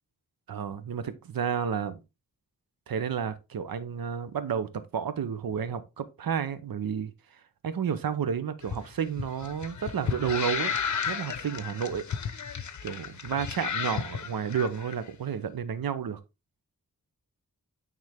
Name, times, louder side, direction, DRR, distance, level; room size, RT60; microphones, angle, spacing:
voice 1, 0.5-2.0 2.9-7.1 7.6-10.7 11.1-12.1 12.8-16.2, right 7 dB, 85° right, 0.9 m, -31 dB
sound 1, 8.6-14.9, left 6 dB, 60° left, 0.8 m, -33 dB
9.2 x 3.7 x 3.5 m
wide cardioid pair, 75°, 34 cm